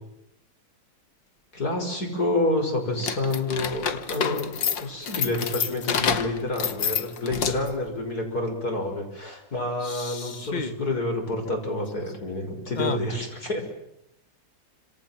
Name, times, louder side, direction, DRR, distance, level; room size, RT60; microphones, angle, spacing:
voice 1, 1.5-13.6, left 2 dB, 55° left, 6.5 m, -28 dB
sound 1, 3.0-7.8, left 7 dB, 85° left, 2.2 m, -28 dB
voice 2, 9.8-10.8 12.7-13.0, left 4 dB, 25° left, 1.6 m, -32 dB
29.0 x 27.0 x 7.6 m
omnidirectional pair, 1.9 m